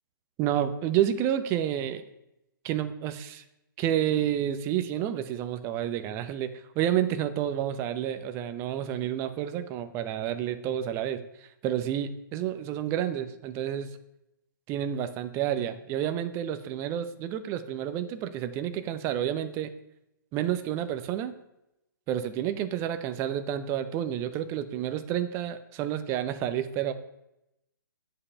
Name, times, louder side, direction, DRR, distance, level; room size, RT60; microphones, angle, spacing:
voice 1, 0.4-2.0 2.6-3.4 3.8-14.0 14.7-19.7 20.3-21.3 22.1-26.9, right 10 dB, 25° right, 10 dB, 0.8 m, -30 dB
9.6 x 5.7 x 8.1 m, 0.87 s
figure-of-eight pair, 125°, 11 cm